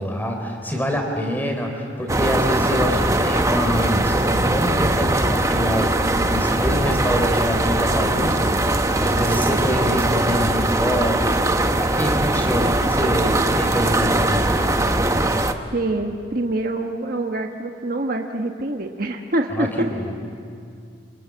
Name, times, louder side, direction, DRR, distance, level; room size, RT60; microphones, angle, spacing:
voice 1, 0.0-11.4 11.7-14.7 19.5-20.2, equal, 10° left, 2 dB, 4.0 m, -26 dB
sound 1, 2.1-15.5, right 1 dB, 15° right, 1.0 m, -20 dB
voice 2, 15.7-19.7, right 2 dB, 50° right, 3 dB, 1.4 m, -25 dB
28.5 x 27.0 x 7.7 m, 2.3 s
head